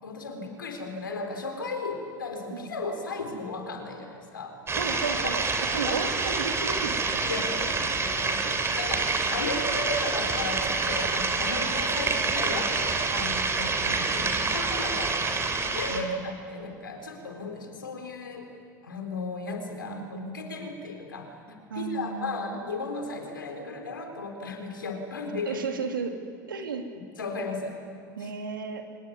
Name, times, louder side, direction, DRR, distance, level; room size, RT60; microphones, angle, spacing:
voice 1, 0.0-4.6 5.2-5.3 5.9-6.1 7.2-13.3 13.6-13.7 14.1-18.5 18.8-25.6 27.2-27.8 28.2-28.3, left 3 dB, 90° left, 4 dB, 4.0 m, -35 dB
sound 1, 4.7-16.0, right 4 dB, 25° right, 3.6 m, -27 dB
voice 2, 4.7-7.7 8.4-8.8 11.5-11.7 13.1-14.2 15.9-16.3 19.9-20.5 21.7-22.6 25.5-26.2 26.5-26.9 28.2-28.9, right 5 dB, 85° right, 5 dB, 2.6 m, -35 dB
24.5 x 20.5 x 9.5 m, 2.3 s
hypercardioid pair, 80°, 11 cm